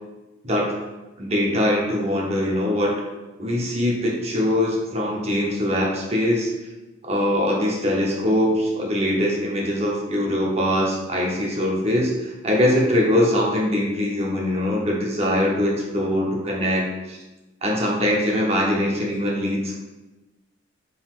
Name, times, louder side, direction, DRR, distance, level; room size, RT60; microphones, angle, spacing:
voice 1, 0.4-0.7 1.2-2.9 3.4-6.5 7.0-17.2 17.6-19.9, left 1 dB, 30° right, -2 dB, 0.7 m, -22 dB
3.8 x 3.8 x 2.4 m, 1.1 s
head